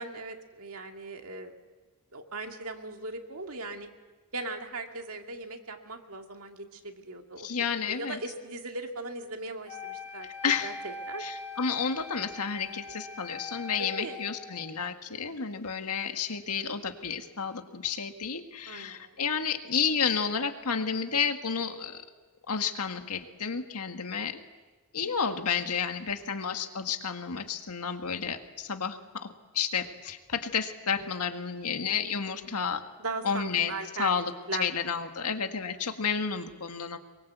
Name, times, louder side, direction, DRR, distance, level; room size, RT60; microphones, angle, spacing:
voice 1, 0.0-1.5 2.1-3.9 4.3-7.5 7.9-10.3 10.6-11.2 13.8-14.2 15.1-15.5 18.7-19.2 25.0-25.1 32.4-32.7 33.0-34.2 34.5-34.7 35.7-35.8, right 3 dB, 70° right, 4 dB, 2.3 m, -39 dB
voice 2, 7.4-8.2 10.4-10.8 11.2-22.0 22.5-24.4 24.9-32.8 33.2-33.7 34.0-34.3 34.6-37.0, left 6 dB, 90° left, 6 dB, 1.8 m, -31 dB
Wind instrument woodwind instrument, 9.7-14.8, left 4 dB, 35° left, 3.2 m, -42 dB
24.5 x 23.0 x 8.1 m, 1.3 s
head